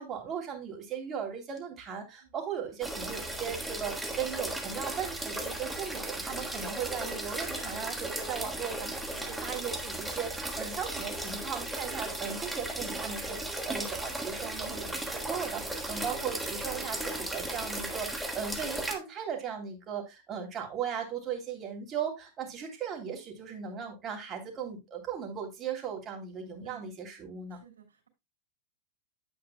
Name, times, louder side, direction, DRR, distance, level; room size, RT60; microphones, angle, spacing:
voice 1, 0.0-27.6, right 7 dB, 30° right, 3.0 m, -37 dB
sound 1, 2.8-18.9, right 1 dB, 5° right, 1.6 m, -36 dB
sound 2, 5.0-8.8 10.1-14.7 15.6-18.1, left 6 dB, 55° left, 4.5 m, -57 dB
voice 2, 27.5-28.1, right 9 dB, 80° right, 2.9 m, -56 dB
9.4 x 8.6 x 2.2 m
hypercardioid pair, 95°, 0 cm